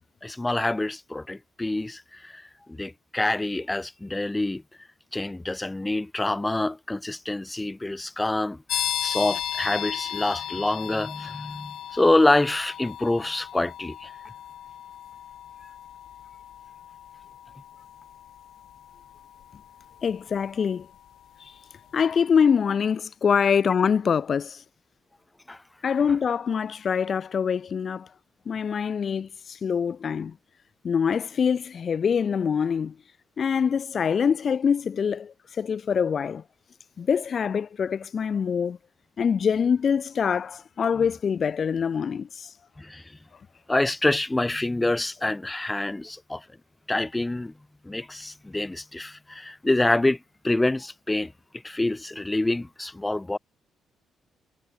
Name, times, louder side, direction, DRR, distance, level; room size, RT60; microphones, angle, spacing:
voice 1, 0.2-4.6 5.1-14.1 25.5-25.6 42.8-43.2 43.7-46.4 46.9-47.5 47.8-51.3 51.6-53.4, left 2 dB, 15° left, 0.7 m, -26 dB
sound 1, 8.7-21.2, left 11 dB, 70° left, 4.1 m, -36 dB
voice 2, 20.0-20.9 21.4-21.6 21.9-24.6 25.8-28.1 28.5-30.3 30.8-32.9 33.4-36.4 37.0-38.8 39.2-42.5, left 7 dB, 50° left, 0.4 m, -24 dB
cardioid pair, 90°, 0 cm